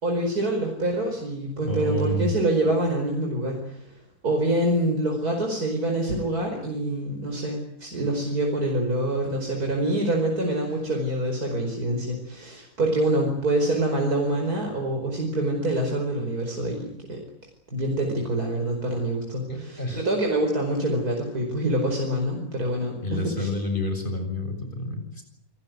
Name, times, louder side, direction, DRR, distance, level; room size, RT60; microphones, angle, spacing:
voice 1, 0.0-3.9 4.2-17.2 17.7-23.5, right 1 dB, 90° right, 2 dB, 5.5 m, -26 dB
voice 2, 1.6-2.3 19.5-20.1 23.0-25.2, equal, 35° left, 6 dB, 7.1 m, -29 dB
29.5 x 17.5 x 9.5 m, 0.71 s
omnidirectional pair, 1.6 m